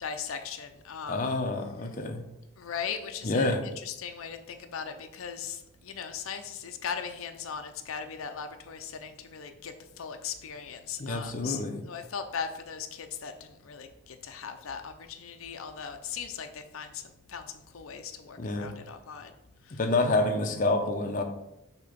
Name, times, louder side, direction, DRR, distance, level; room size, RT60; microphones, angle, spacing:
voice 1, 0.0-1.3 2.6-19.3 19.6-19.8, left 7 dB, 85° left, 7 dB, 0.5 m, -39 dB
voice 2, 1.1-2.2 3.2-3.6 11.0-11.8 18.4-18.7 19.7-21.2, left 2 dB, 40° left, 4 dB, 0.6 m, -28 dB
6.6 x 2.9 x 5.1 m, 0.85 s
head